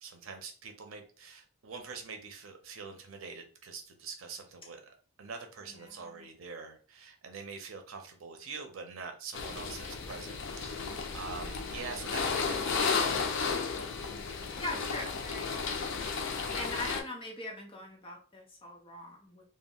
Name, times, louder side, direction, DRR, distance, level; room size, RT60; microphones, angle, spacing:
voice 1, 0.0-13.4, right 5 dB, 85° right, 0.6 m, -45 dB
voice 2, 5.6-6.3 14.6-16.0 16.5-19.4, left 2 dB, 25° left, 0.7 m, -42 dB
sound 1, 9.3-17.0, left 5 dB, 65° left, 0.4 m, -33 dB
2.2 x 2.1 x 3.6 m
head